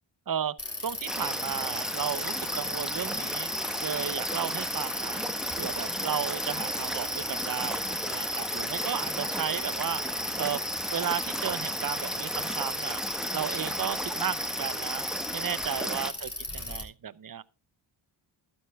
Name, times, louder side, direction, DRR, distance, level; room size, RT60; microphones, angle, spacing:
voice 1, 0.3-3.5 3.8-5.2 5.6-10.0 10.4-10.6 10.9-13.0 13.3-15.0 15.3-17.4, right 8 dB, 45° right, 0.7 m, -34 dB
Bicycle, 0.6-16.8, left 2 dB, 30° left, 3.5 m, -37 dB
sound 1, 1.1-16.1, equal, ahead, 1.3 m, -34 dB
12.5 x 12.5 x 2.3 m
cardioid pair, 65°, 49 cm